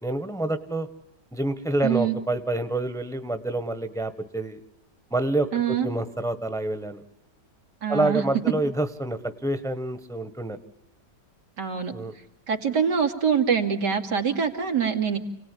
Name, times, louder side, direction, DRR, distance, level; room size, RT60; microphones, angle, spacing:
voice 1, 0.0-0.9 1.3-4.6 5.1-7.0 7.9-10.6 11.9-12.1, right 2 dB, ahead, 11 dB, 1.2 m, -27 dB
voice 2, 1.8-2.2 5.5-5.9 7.8-8.2 11.6-12.0 12.5-15.2, right 7 dB, 85° right, 3 dB, 3.2 m, -24 dB
29.0 x 18.5 x 10.0 m, 0.85 s
omnidirectional pair, 1.8 m